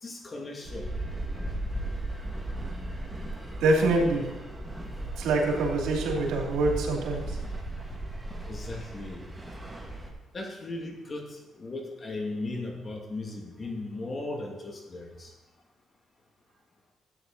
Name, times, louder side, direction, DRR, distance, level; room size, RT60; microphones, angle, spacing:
voice 1, 0.0-0.9 8.5-9.2 10.3-15.3, left 2 dB, 35° left, 1 dB, 2.5 m, -37 dB
sound 1, 0.6-10.1, right 1 dB, 10° right, 2.0 m, -36 dB
voice 2, 3.6-4.2 5.2-7.2, right 2 dB, 90° right, -1 dB, 2.9 m, -25 dB
13.5 x 9.1 x 4.1 m, 1.0 s
cardioid pair, 90°, 0 cm